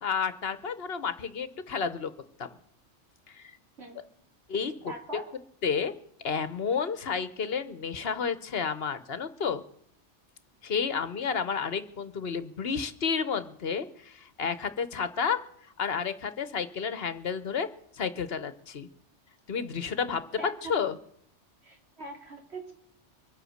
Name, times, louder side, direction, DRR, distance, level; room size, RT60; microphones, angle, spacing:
voice 1, 0.0-2.1 2.4-2.5 3.3-3.4 4.5-4.9 5.6-5.9 6.2-9.6 10.6-15.4 15.8-17.7 18.0-18.9 19.5-20.2 20.7-21.0, left 6 dB, 60° left, 13 dB, 1.2 m, -31 dB
voice 2, 4.9-5.3 20.4-20.7 21.6-22.7, right 2 dB, 60° right, 2 dB, 2.9 m, -41 dB
23.0 x 8.3 x 6.4 m, 0.69 s
omnidirectional pair, 1.2 m